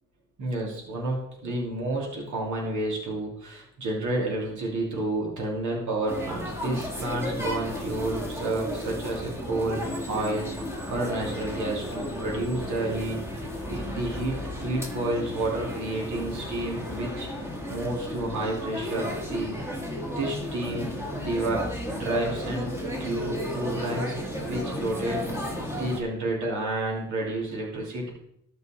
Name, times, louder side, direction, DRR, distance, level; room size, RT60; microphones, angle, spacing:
voice 1, 0.4-9.8 10.1-10.5 10.9-13.2 13.7-17.3 17.7-19.5 20.1-20.9 21.2-25.2 25.7-28.1, right 2 dB, 70° right, -2 dB, 3.2 m, -30 dB
sound 1, 6.1-26.0, equal, 10° right, 2.1 m, -34 dB
12.5 x 5.4 x 4.5 m, 0.75 s
cardioid pair, 90°, 30 cm